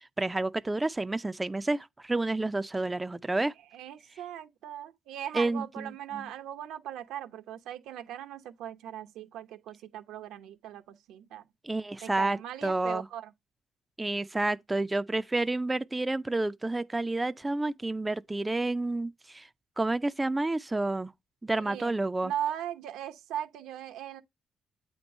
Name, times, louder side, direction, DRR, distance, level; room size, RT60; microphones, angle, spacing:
voice 1, 0.2-3.5 5.3-6.3 11.6-13.0 14.0-19.5 19.8-21.1 21.4-22.3, right 2 dB, 15° right, 0.4 m, -30 dB
voice 2, 3.7-11.4 12.0-13.3 21.5-21.9 22.2-24.2, right 11 dB, 90° right, 0.8 m, -39 dB
8.6 x 3.0 x 5.3 m
cardioid pair, 90°, 0 cm